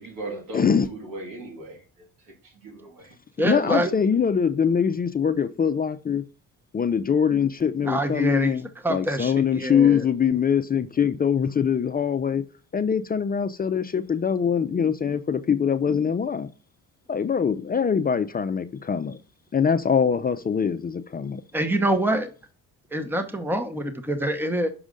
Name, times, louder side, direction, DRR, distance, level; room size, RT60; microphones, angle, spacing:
voice 1, 0.0-3.2, right 1 dB, 75° right, 2.7 m, -38 dB
voice 2, 0.5-0.9 3.4-6.2 6.7-12.4 12.7-16.5 17.1-19.2 19.5-21.4, left 7 dB, 25° left, 0.5 m, -23 dB
voice 3, 3.4-3.9 7.9-8.6 8.8-10.0 21.5-22.3 22.9-24.7, right 1 dB, 5° right, 1.1 m, -25 dB
6.4 x 4.9 x 3.8 m
cardioid pair, 80°, 34 cm